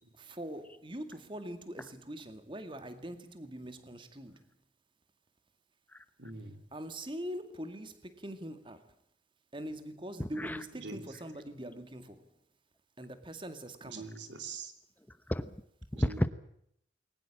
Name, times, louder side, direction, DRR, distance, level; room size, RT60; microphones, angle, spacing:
voice 1, 0.2-4.4 6.7-8.8 9.5-12.3 13.0-14.1, right 1 dB, 25° right, 10 dB, 2.2 m, -43 dB
voice 2, 6.2-6.6 10.8-11.2 13.8-14.7 15.9-16.2, right 4 dB, 80° right, 11 dB, 3.4 m, -44 dB
voice 3, 10.2-10.7 11.1-11.2 15.1-15.6 15.9-16.3, equal, 10° left, 13 dB, 0.9 m, -33 dB
21.5 x 19.5 x 8.6 m, 0.71 s
head